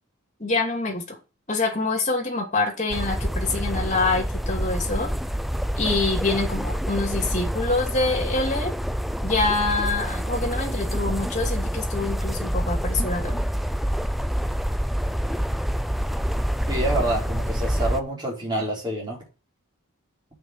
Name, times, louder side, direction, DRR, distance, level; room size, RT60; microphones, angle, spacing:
voice 1, 0.4-1.2 1.5-5.1 5.8-8.7 9.2-13.4, left 3 dB, 30° left, 1 dB, 2.8 m, -26 dB
sound 1, 2.9-18.0, equal, ahead, 0.4 m, -27 dB
voice 2, 16.7-19.2, right 1 dB, 20° right, -3 dB, 4.6 m, -27 dB
7.3 x 5.7 x 7.5 m, 0.31 s
head